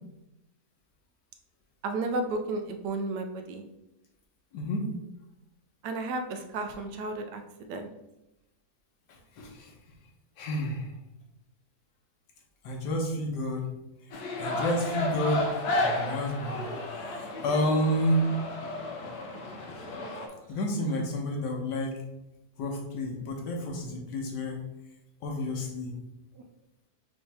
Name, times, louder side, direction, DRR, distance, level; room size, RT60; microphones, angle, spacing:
voice 1, 1.8-3.6 5.8-7.4 7.7-7.9, right 2 dB, 85° right, 6 dB, 1.2 m, -32 dB
voice 2, 4.5-4.8 9.4-9.7 10.4-10.9 12.6-13.7 14.4-15.5 15.8-16.7 17.4-18.3 20.5-21.9 22.6-24.6 25.2-26.0, equal, 90° left, 1 dB, 1.5 m, -29 dB
sound 1, 14.1-20.3, left 2 dB, 75° left, 1.2 m, -33 dB
5.7 x 2.7 x 3.3 m, 0.92 s
omnidirectional pair, 1.8 m